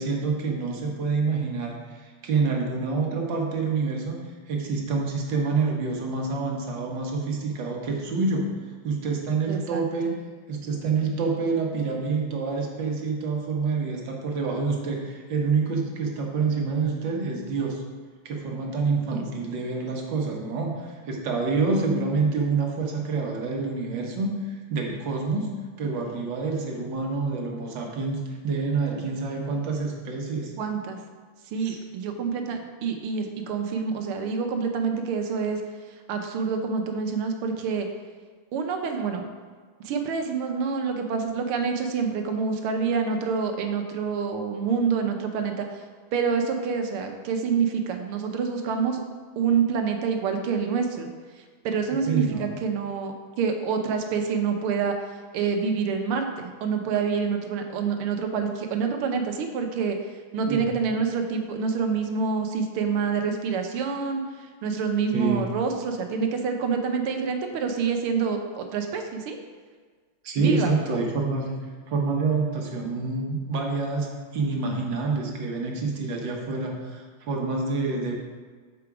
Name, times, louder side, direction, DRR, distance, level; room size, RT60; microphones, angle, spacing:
voice 1, 0.0-4.2 4.5-8.5 8.8-10.1 10.5-17.8 18.2-25.5 25.8-30.5 31.6-31.8 52.1-52.5 60.5-60.6 65.1-65.4 70.2-71.5 71.9-78.1, right 4 dB, 60° right, 0 dB, 1.6 m, -27 dB
voice 2, 9.5-9.8 19.1-19.2 30.6-31.0 31.5-35.6 36.1-37.9 38.5-39.3 39.8-45.7 46.1-49.0 49.4-51.1 51.6-54.9 55.3-60.0 60.3-64.2 64.6-69.4 70.4-70.7, right 5 dB, 80° right, 4 dB, 1.6 m, -27 dB
6.9 x 4.9 x 4.7 m, 1.5 s
omnidirectional pair, 2.4 m